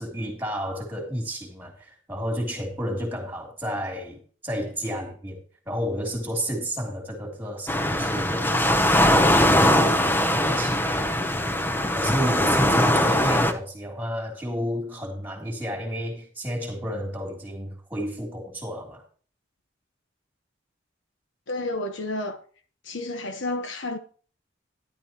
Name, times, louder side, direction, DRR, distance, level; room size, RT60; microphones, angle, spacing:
voice 1, 0.0-5.4 5.7-11.1 11.9-19.0, equal, 10° right, 3.1 m, -31 dB
Waves surf, 7.7-13.5, left 1 dB, 10° left, 0.8 m, -21 dB
voice 2, 21.5-22.4 22.8-24.0, left 2 dB, 70° left, 1.2 m, -30 dB
12.0 x 11.5 x 3.0 m
head